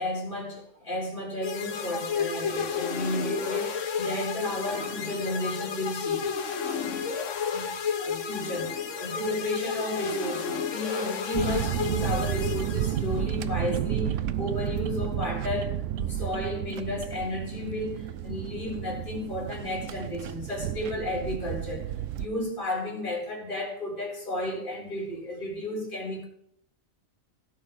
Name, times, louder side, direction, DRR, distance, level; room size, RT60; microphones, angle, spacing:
voice 1, 0.0-6.3 7.5-7.7 8.0-21.9 22.2-26.2, left 1 dB, 40° left, -2 dB, 3.7 m, -33 dB
sound 1, 1.4-13.3, left 6 dB, 70° left, 1.3 m, -32 dB
sound 2, 11.3-22.3, right 11 dB, 75° right, 1.0 m, -32 dB
16.0 x 6.7 x 5.0 m, 0.71 s
omnidirectional pair, 1.4 m